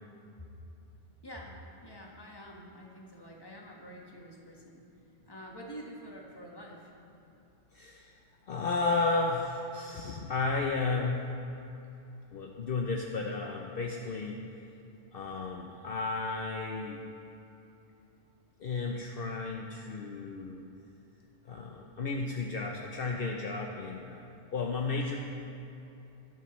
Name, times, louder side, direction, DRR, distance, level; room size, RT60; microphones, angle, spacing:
voice 1, 1.2-4.8 5.3-6.9, equal, 20° left, -2 dB, 1.4 m, -47 dB
voice 2, 7.7-8.1 8.5-11.3 12.3-14.4 15.1-17.0 18.6-20.7 21.5-24.3 24.5-25.2, left 3 dB, 60° left, 1 dB, 0.8 m, -33 dB
21.0 x 7.4 x 3.1 m, 2.8 s
omnidirectional pair, 1.1 m